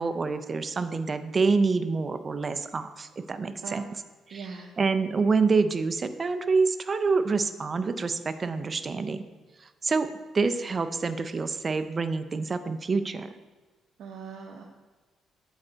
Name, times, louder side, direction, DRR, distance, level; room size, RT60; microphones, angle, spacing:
voice 1, 0.0-3.8 4.3-4.5 4.8-9.2 9.6-10.1 10.3-13.3, right 4 dB, 35° right, 11 dB, 0.4 m, -27 dB
voice 2, 4.3-4.7 14.0-14.6, right 5 dB, 75° right, -1 dB, 0.7 m, -40 dB
8.1 x 4.5 x 3.9 m, 1.3 s
cardioid pair, 90°, 0 cm